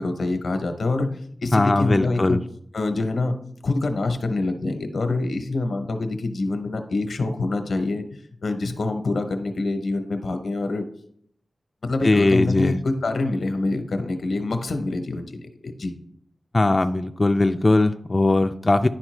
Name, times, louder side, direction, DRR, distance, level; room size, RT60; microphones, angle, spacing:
voice 1, 0.0-2.4 2.7-3.4 3.6-10.8 11.8-15.9, left 2 dB, 85° left, 7 dB, 0.8 m, -26 dB
voice 2, 1.5-2.4 12.0-12.8 16.5-18.9, left 2 dB, 35° left, 7 dB, 0.3 m, -19 dB
10.5 x 4.3 x 3.2 m, 0.67 s
wide cardioid pair, 65°, 0 cm